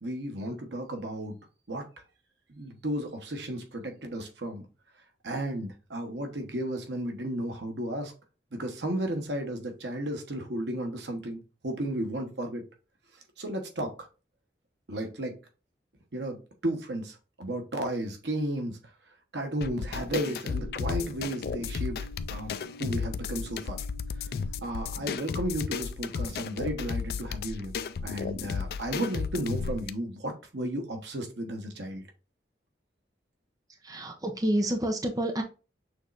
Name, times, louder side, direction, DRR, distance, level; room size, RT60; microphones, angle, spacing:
voice 1, 0.0-1.4 1.7-1.8 2.5-4.6 5.2-8.1 8.5-12.6 13.4-14.1 14.9-15.4 16.1-18.8 19.3-22.0 22.3-23.8 24.6-27.8 28.0-32.0, right 1 dB, 90° right, 4 dB, 1.2 m, -33 dB
sound 1, 19.6-29.9, left 5 dB, 60° left, 0.3 m, -34 dB
sound 2, 20.5-25.6, left 1 dB, 5° left, 1.1 m, -50 dB
voice 2, 33.8-35.4, right 1 dB, 20° right, 4 dB, 0.6 m, -28 dB
6.4 x 3.1 x 2.5 m, 0.32 s
head